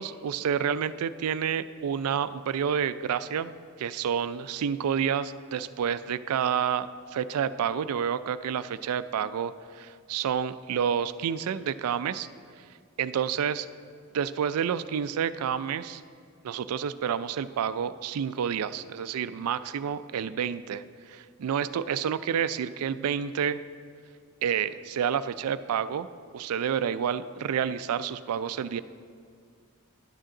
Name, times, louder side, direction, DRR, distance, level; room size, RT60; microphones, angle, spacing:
voice 1, 0.0-3.5 3.8-12.3 13.0-13.7 14.1-16.0 16.4-23.6 24.4-26.1 26.3-28.8, right 8 dB, 90° right, 14 dB, 0.3 m, -29 dB
11.0 x 8.9 x 3.8 m, 2.2 s
head